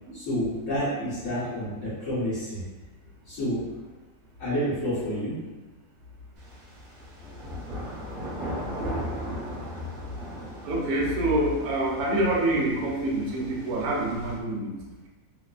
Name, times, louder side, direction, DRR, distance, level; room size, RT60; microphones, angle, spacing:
voice 1, 0.1-2.6 3.3-3.6 4.4-5.4, equal, 55° left, -12 dB, 1.0 m, -29 dB
sound 1, 6.4-14.3, equal, 40° right, 0.8 m, -37 dB
voice 2, 10.6-14.7, right 1 dB, 70° right, -3 dB, 1.0 m, -26 dB
2.9 x 2.0 x 2.3 m, 1.2 s
omnidirectional pair, 1.9 m